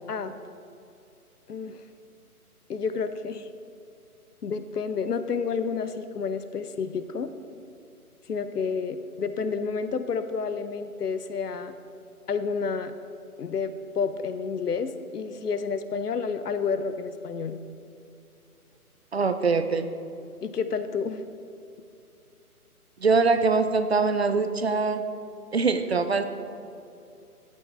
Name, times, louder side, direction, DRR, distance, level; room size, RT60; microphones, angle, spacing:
voice 1, 1.5-1.8 2.7-3.5 4.4-7.3 8.3-11.7 12.3-12.9 13.4-17.6 20.4-21.2, left 5 dB, 85° left, 11 dB, 0.8 m, -30 dB
voice 2, 19.1-19.9 23.0-25.1 25.5-26.2, right 4 dB, 45° right, 9 dB, 0.5 m, -23 dB
12.5 x 8.4 x 3.3 m, 2.6 s
hypercardioid pair, 160°, 45 cm